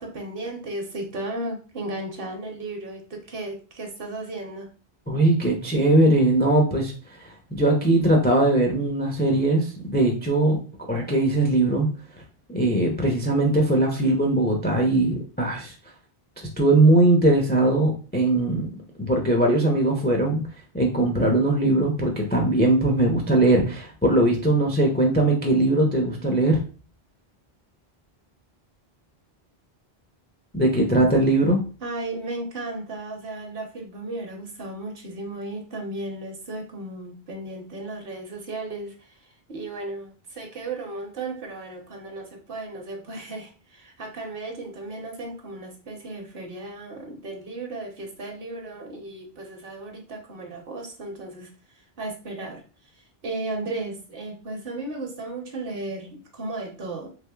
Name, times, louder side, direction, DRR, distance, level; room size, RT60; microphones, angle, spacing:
voice 1, 0.0-4.7 31.8-39.1 39.5-51.5 52.0-52.6 53.2-57.1, right 2 dB, 65° right, 3 dB, 1.0 m, -35 dB
voice 2, 5.1-6.9 7.2-10.6 10.9-11.9 12.5-15.7 16.6-18.7 19.0-20.4 20.7-26.6 30.5-31.6, right 2 dB, 15° left, 1 dB, 0.3 m, -20 dB
3.4 x 3.0 x 2.2 m, 0.36 s
omnidirectional pair, 1.0 m